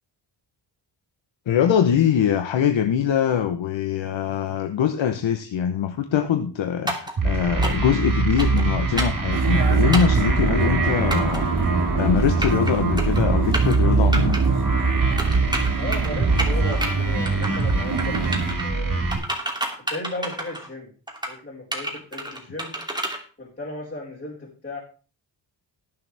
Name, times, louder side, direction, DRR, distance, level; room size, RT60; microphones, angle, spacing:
voice 1, 1.5-11.5 11.8-14.4, left 8 dB, 80° left, 6 dB, 1.1 m, -23 dB
sound 1, 6.9-7.1 7.6-7.9 8.4-8.6 9.0-9.2 9.9-10.2 11.1-11.4 12.2-12.7 13.0-13.2 13.5-13.8 14.1-14.4 15.2-16.1 16.4-16.9 17.2-17.7 18.0-18.6 19.1-20.7 21.1-21.3 21.7-23.2, right 1 dB, 10° right, 2.9 m, -29 dB
sound 2, 7.2-19.2, right 3 dB, 45° right, 4.9 m, -22 dB
Vehicle, 9.3-18.5, right 5 dB, 60° right, 2.7 m, -29 dB
voice 2, 15.8-19.1 19.9-20.9 21.3-22.8 23.4-24.8, left 2 dB, 20° left, -7 dB, 4.9 m, -35 dB
19.5 x 6.9 x 3.5 m, 0.38 s
cardioid pair, 80°, 45 cm